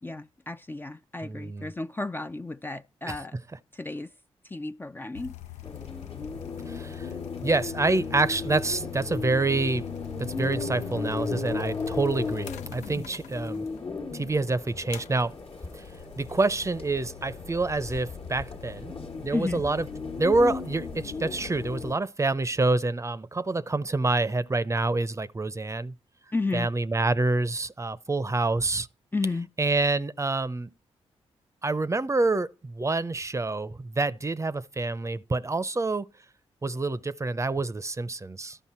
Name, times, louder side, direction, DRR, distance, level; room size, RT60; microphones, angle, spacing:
voice 1, 0.0-3.4 3.7-4.1 4.4-5.3 12.9-13.1 19.3-19.6 26.3-26.7 29.1-29.5, left 3 dB, 15° left, 0.4 m, -32 dB
voice 2, 1.2-1.7 3.1-3.2 6.7-7.1 7.4-9.9 10.2-13.7 14.1-15.3 15.7-15.8 16.2-18.9 19.2-19.9 20.2-25.9 26.5-28.9 29.6-30.7 31.6-36.1 36.6-38.6, right 3 dB, 25° right, 0.6 m, -27 dB
sound 1, 5.1-13.8 14.9-22.0, left 13 dB, 85° left, 0.4 m, -43 dB
sound 2, 5.6-21.9, left 4 dB, 55° left, 1.3 m, -36 dB
12.0 x 5.3 x 4.3 m
supercardioid pair, 45°, 12 cm